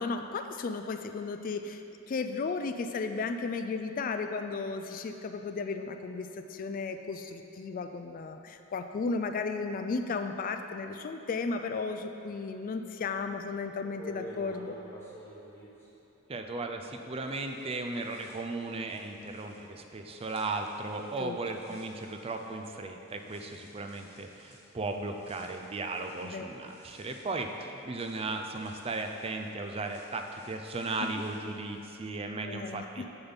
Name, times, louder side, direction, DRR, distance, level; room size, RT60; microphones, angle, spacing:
voice 1, 0.0-1.8 2.1-14.7 21.2-21.4 26.2-26.5 32.4-33.1, left 4 dB, 40° left, 7 dB, 0.3 m, -34 dB
sound 1, 13.8-16.9 17.2-32.0, equal, 10° left, 1.1 m, -54 dB
voice 2, 16.3-33.0, right 3 dB, 25° right, 4 dB, 0.4 m, -36 dB
7.2 x 6.7 x 4.0 m, 2.9 s
head